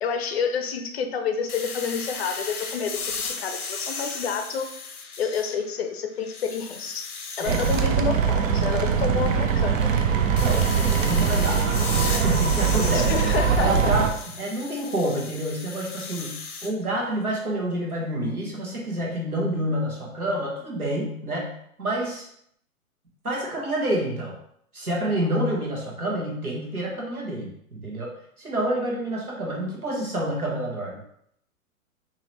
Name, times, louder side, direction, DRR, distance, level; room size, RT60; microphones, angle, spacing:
voice 1, 0.0-4.7 5.2-7.1 7.4-9.9 12.9-13.9, left 6 dB, 50° left, 7 dB, 0.5 m, -29 dB
sound 1, 1.5-5.8 6.2-7.8 10.4-16.7, left 4 dB, 90° left, 0.7 m, -35 dB
sound 2, 7.5-14.1, right 6 dB, 65° right, 0.6 m, -22 dB
voice 2, 10.4-11.6 11.9-13.1 13.6-14.1 14.4-22.3 23.2-24.3 24.7-28.1 28.4-31.0, right 1 dB, 90° right, -3 dB, 1.5 m, -28 dB
3.8 x 2.9 x 2.9 m, 0.71 s
figure-of-eight pair, 120°, 43 cm